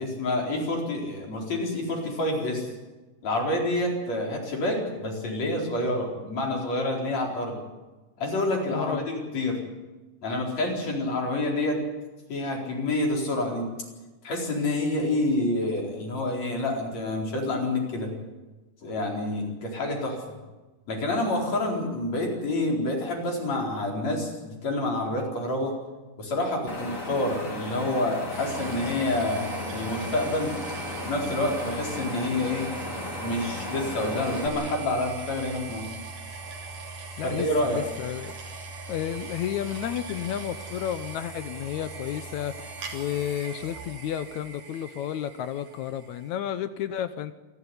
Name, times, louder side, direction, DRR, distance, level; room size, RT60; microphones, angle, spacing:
voice 1, 0.0-2.7 3.2-7.6 8.2-9.6 10.2-11.8 12.3-13.7 14.2-18.1 18.8-20.4 20.9-25.8 26.2-30.6 31.1-32.7 33.2-35.9 37.2-37.8, left 1 dB, 55° left, 0 dB, 5.5 m, -28 dB
voice 2, 8.7-9.1 37.2-38.4 38.9-47.3, left 10 dB, 70° left, 12 dB, 2.0 m, -32 dB
Wind, 26.7-34.5, left 2 dB, 25° left, 3.5 m, -35 dB
sound 1, 28.3-46.3, right 3 dB, 75° right, 4.8 m, -40 dB
27.5 x 12.0 x 9.7 m, 1.2 s
omnidirectional pair, 3.7 m